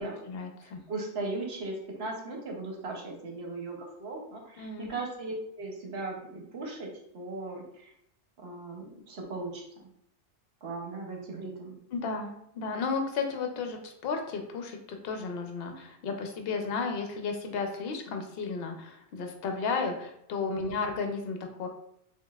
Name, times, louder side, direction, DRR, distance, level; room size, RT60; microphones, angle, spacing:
voice 1, 0.0-0.8 4.6-4.9 11.9-21.7, left 4 dB, 65° left, 4 dB, 0.8 m, -33 dB
voice 2, 0.6-7.9 8.4-9.6 10.6-11.8 20.6-20.8, right 2 dB, 65° right, 1 dB, 0.9 m, -38 dB
5.1 x 2.3 x 2.3 m, 0.75 s
omnidirectional pair, 1.2 m